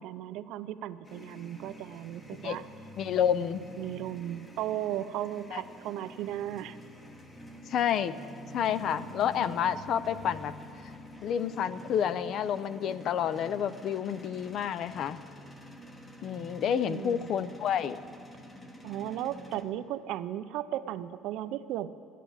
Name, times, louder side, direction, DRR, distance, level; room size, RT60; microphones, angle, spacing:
voice 1, 0.0-2.7 3.8-6.8 16.7-17.3 18.8-21.9, right 12 dB, 60° right, 13 dB, 0.5 m, -36 dB
wringing in the centrifuge, 1.0-19.6, equal, 15° left, 0.9 m, -48 dB
voice 2, 3.0-3.6 5.5-5.6 7.7-8.2 8.5-10.5 10.8-10.9 11.2-15.2 16.2-18.0, left 8 dB, 40° left, 15 dB, 0.4 m, -29 dB
13.0 x 9.2 x 8.7 m, 2.5 s
cardioid pair, 170°, 0 cm